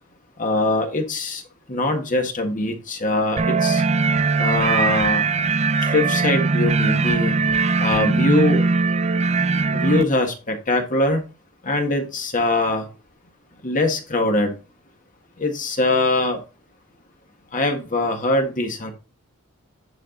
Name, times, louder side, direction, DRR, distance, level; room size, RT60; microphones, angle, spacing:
voice 1, 0.4-1.4 1.7-3.8 4.4-5.2 5.8-7.3 7.8-8.6 9.7-11.2 11.6-12.9 13.6-14.5 15.4-16.4 17.5-18.9, left 2 dB, 35° left, 1.7 m, -22 dB
sound 1, 3.4-10.0, right 4 dB, 30° right, 0.5 m, -20 dB
9.8 x 4.8 x 3.9 m
head